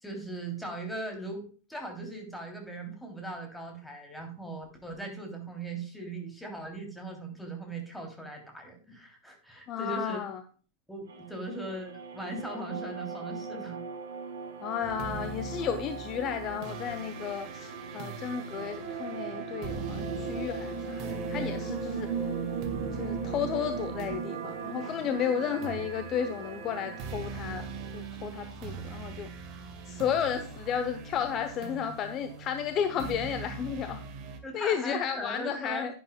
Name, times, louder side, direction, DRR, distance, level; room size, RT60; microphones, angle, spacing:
voice 1, 0.0-10.2 10.9-13.8 34.4-35.9, right 2 dB, 5° left, 2 dB, 3.1 m, -39 dB
voice 2, 9.7-10.4 14.6-22.1 22.9-29.3 29.9-34.0 34.5-35.9, left 8 dB, 35° left, 9 dB, 0.8 m, -33 dB
sound 1, 11.1-28.0, right 5 dB, 65° right, 2.3 m, -38 dB
sound 2, 14.8-34.4, right 4 dB, 40° right, 1.7 m, -42 dB
10.5 x 10.5 x 2.3 m, 0.39 s
figure-of-eight pair, 90°, 0 cm